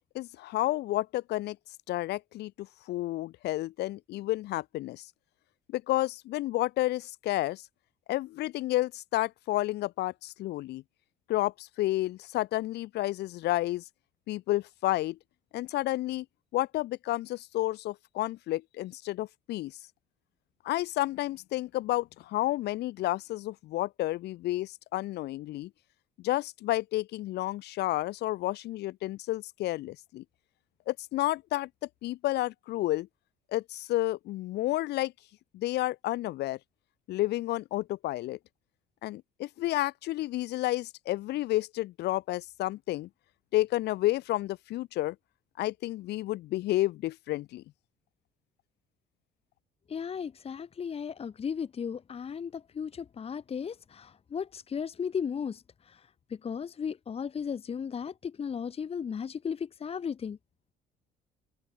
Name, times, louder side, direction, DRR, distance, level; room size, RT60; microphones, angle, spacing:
voice 1, 0.1-1.6 1.9-5.1 5.7-7.6 8.1-10.8 11.3-13.8 14.3-15.2 15.5-16.2 16.5-19.8 20.6-25.7 26.2-30.2 30.9-31.7 32.0-33.1 33.5-35.1 35.5-36.6 37.1-38.4 39.0-43.1 43.5-45.1 45.6-47.6, left 16 dB, 80° left, 7.9 m, -31 dB
voice 2, 49.9-56.0 56.4-60.4, left 7 dB, 35° left, 1.7 m, -35 dB
open air
cardioid pair, 110°, 17 cm